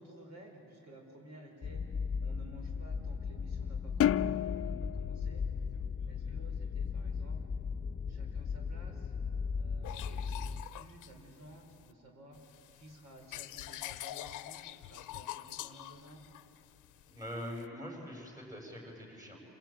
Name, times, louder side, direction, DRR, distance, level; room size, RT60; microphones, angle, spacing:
voice 1, 0.0-5.4 6.1-7.4 8.1-9.1 9.5-12.4 12.7-16.2, right 1 dB, 60° right, 1 dB, 5.1 m, -55 dB
sound 1, 1.6-10.6, left 5 dB, 25° left, 0.9 m, -37 dB
sound 2, 4.0-6.6, left 11 dB, 50° left, 0.6 m, -32 dB
sound 3, 9.8-11.9 12.3-17.7, left 14 dB, 90° left, 0.8 m, -45 dB
voice 2, 17.1-19.4, equal, 10° right, 0 dB, 7.3 m, -43 dB
27.5 x 18.0 x 9.1 m, 2.9 s
cardioid pair, 90°, 30 cm